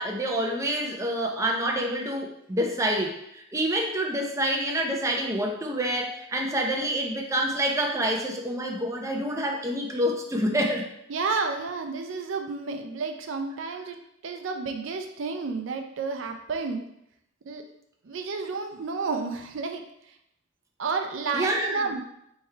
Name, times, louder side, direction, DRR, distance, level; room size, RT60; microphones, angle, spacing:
voice 1, 0.0-10.8 21.3-21.9, right 1 dB, 15° right, 1 dB, 0.5 m, -27 dB
voice 2, 11.1-14.0 14.2-16.8 17.5-17.6 18.1-19.8 20.8-22.0, right 4 dB, 75° right, 5 dB, 0.5 m, -31 dB
3.5 x 3.2 x 4.4 m, 0.78 s
head